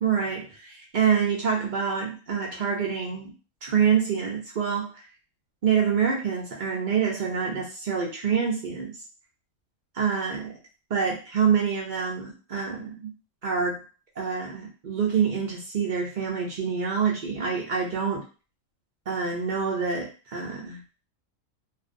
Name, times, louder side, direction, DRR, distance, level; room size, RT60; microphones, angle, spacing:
voice 1, 0.0-3.3 3.6-5.0 5.6-8.9 9.9-10.5 10.9-13.1 13.4-13.8 14.2-18.2 19.1-20.8, right 6 dB, 65° right, -3 dB, 0.4 m, -26 dB
2.5 x 2.0 x 2.5 m, 0.35 s
omnidirectional pair, 1.4 m